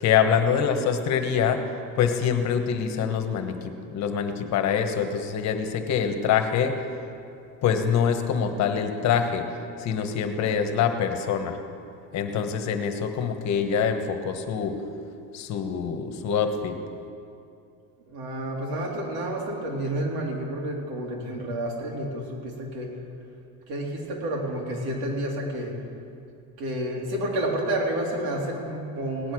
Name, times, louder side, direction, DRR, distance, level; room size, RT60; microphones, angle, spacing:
voice 1, 0.0-1.6 2.0-6.7 7.6-9.4 9.8-11.6 12.1-14.8 15.3-16.8, left 7 dB, 50° left, 6 dB, 1.3 m, -25 dB
voice 2, 18.1-22.9 23.7-25.7 26.6-29.3, right 1 dB, 85° right, -1 dB, 3.3 m, -30 dB
17.5 x 10.5 x 6.3 m, 2.5 s
cardioid pair, 155°, 35 cm